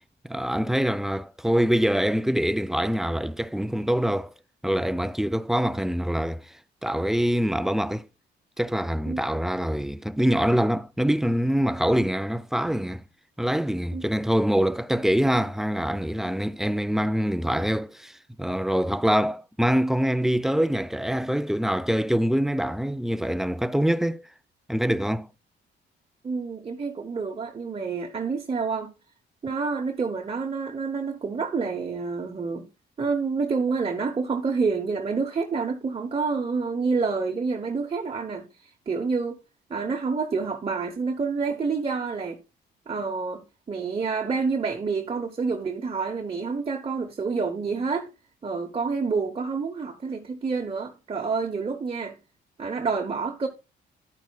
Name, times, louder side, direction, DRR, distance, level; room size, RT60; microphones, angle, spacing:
voice 1, 0.2-4.3 4.6-6.5 6.8-8.1 8.6-13.0 13.4-18.1 18.4-24.2 24.7-25.3, equal, ahead, 0.3 m, -24 dB
voice 2, 26.2-28.9 29.4-32.7 33.0-39.4 39.7-42.4 42.9-48.1 48.4-52.2 52.6-53.5, right 4 dB, 30° right, 1.0 m, -28 dB
10.5 x 8.8 x 2.3 m
cardioid pair, 90°, 20 cm